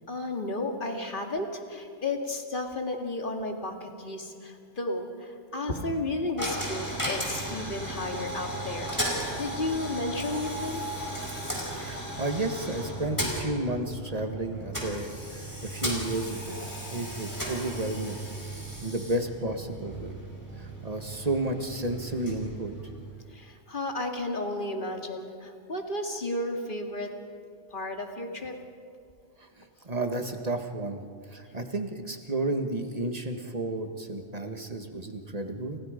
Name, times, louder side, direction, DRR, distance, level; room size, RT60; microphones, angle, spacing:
voice 1, 0.1-10.8 23.3-27.1 27.7-28.5, left 2 dB, 45° left, 3 dB, 2.5 m, -33 dB
Coin (dropping), 6.4-23.3, right 1 dB, 15° left, 4.8 m, -35 dB
voice 2, 11.7-16.6 16.9-18.2 18.8-20.2 20.6-22.7 29.9-31.0 31.3-35.8, right 2 dB, 30° right, 5 dB, 1.8 m, -32 dB
29.5 x 29.5 x 5.2 m, 2.3 s
omnidirectional pair, 1.3 m